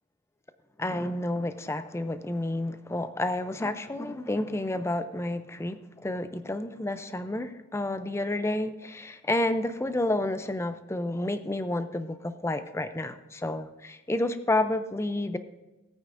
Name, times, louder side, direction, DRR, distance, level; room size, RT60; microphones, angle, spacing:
voice 1, 0.8-5.8 6.0-15.4, left 1 dB, 10° left, 10 dB, 0.4 m, -30 dB
16.5 x 9.0 x 2.6 m, 1.1 s
head